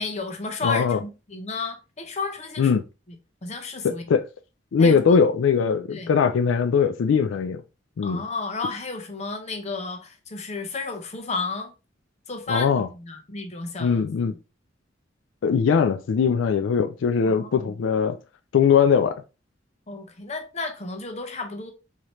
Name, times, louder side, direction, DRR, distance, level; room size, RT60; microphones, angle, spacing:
voice 1, 0.0-2.8 3.4-4.0 4.8-5.2 5.9-6.1 8.0-11.7 12.3-14.4 17.2-17.8 19.9-21.7, left 3 dB, 35° left, 0.8 m, -33 dB
voice 2, 0.6-1.0 2.6-2.8 3.8-4.2 4.7-7.6 8.0-8.2 12.5-12.9 13.8-14.4 15.4-18.2 18.5-19.2, left 6 dB, 85° left, 0.3 m, -21 dB
4.8 x 2.8 x 3.0 m
head